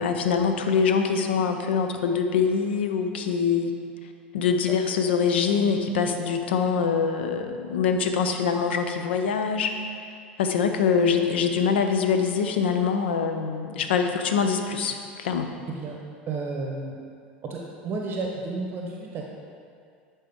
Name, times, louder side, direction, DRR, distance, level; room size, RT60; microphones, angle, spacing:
voice 1, 0.0-3.8 4.3-9.7 10.4-15.5, left 6 dB, 80° left, 6 dB, 0.6 m, -24 dB
voice 2, 16.3-17.0 17.5-19.3, right 3 dB, 40° right, -1 dB, 0.8 m, -32 dB
10.0 x 4.3 x 3.6 m, 2.2 s
hypercardioid pair, 80°, 6 cm